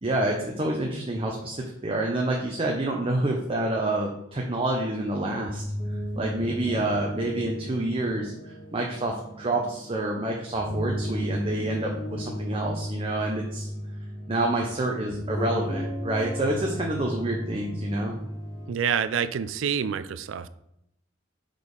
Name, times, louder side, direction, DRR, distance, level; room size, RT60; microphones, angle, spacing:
voice 1, 0.0-5.6 6.2-13.7 14.3-18.2, right 2 dB, 30° right, 0 dB, 0.7 m, -28 dB
sound 1, 5.3-18.7, equal, 25° left, 1.9 m, -34 dB
voice 2, 18.7-20.5, right 7 dB, 70° right, 15 dB, 0.4 m, -27 dB
4.9 x 4.1 x 5.3 m, 0.78 s
head